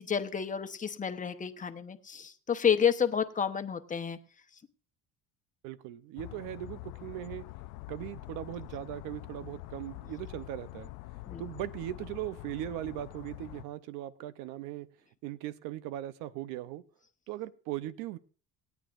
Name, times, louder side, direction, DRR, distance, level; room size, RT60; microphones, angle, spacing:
voice 1, 0.0-4.2 11.3-11.4, left 7 dB, 25° left, 8 dB, 1.0 m, -30 dB
voice 2, 5.6-7.5 7.9-10.9 11.4-14.9 15.2-16.8 17.3-18.2, right 13 dB, 85° right, 14 dB, 0.8 m, -39 dB
sound 1, 6.2-13.7, left 18 dB, 85° left, 0.6 m, -45 dB
27.0 x 9.2 x 2.6 m, 0.38 s
cardioid pair, 120°, 31 cm